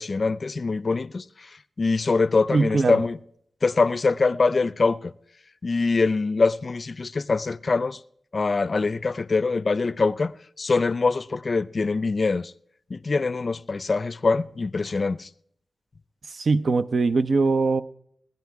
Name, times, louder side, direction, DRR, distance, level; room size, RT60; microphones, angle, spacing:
voice 1, 0.0-1.5 1.8-3.2 3.6-5.1 5.6-8.0 8.3-10.3 10.6-12.5 12.9-15.3, left 4 dB, 55° left, 0.4 m, -23 dB
voice 2, 2.5-3.0 16.3-17.8, right 4 dB, 70° right, 0.5 m, -21 dB
18.0 x 10.5 x 4.7 m
cardioid pair, 60°, 0 cm